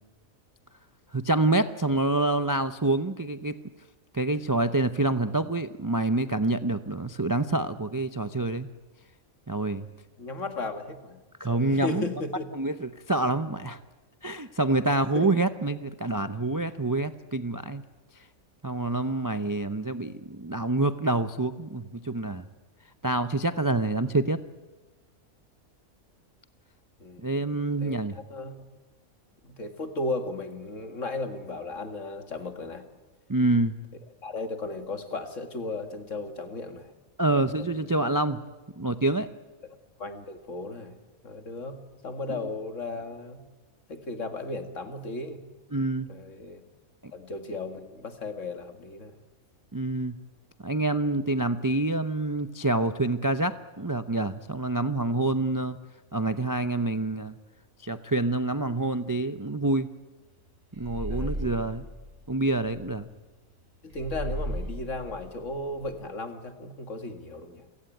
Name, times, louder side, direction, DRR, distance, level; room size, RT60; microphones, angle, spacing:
voice 1, 1.1-3.6 4.1-8.7 9.5-9.9 11.4-12.1 12.5-13.8 14.2-17.8 18.6-22.5 23.0-24.4 27.2-28.2 33.3-33.8 37.2-38.4 38.8-39.3 42.3-42.4 45.7-46.1 49.7-50.2 50.6-55.8 56.1-57.3 57.8-59.9 60.8-61.8 62.3-63.1, right 2 dB, 25° right, 11 dB, 0.4 m, -27 dB
voice 2, 10.2-11.2 11.5-12.5 14.8-15.3 27.0-27.3 27.8-28.5 29.4-32.9 34.2-36.9 37.3-37.9 40.0-41.0 41.2-43.4 43.9-45.4 46.1-46.6 47.1-49.2 61.1-61.6 63.8-67.6, left 2 dB, 60° left, 7 dB, 2.3 m, -35 dB
sound 1, 60.7-62.9 63.9-65.9, equal, 40° right, 2.8 m, -36 dB
28.0 x 17.5 x 9.1 m, 1.2 s
omnidirectional pair, 1.5 m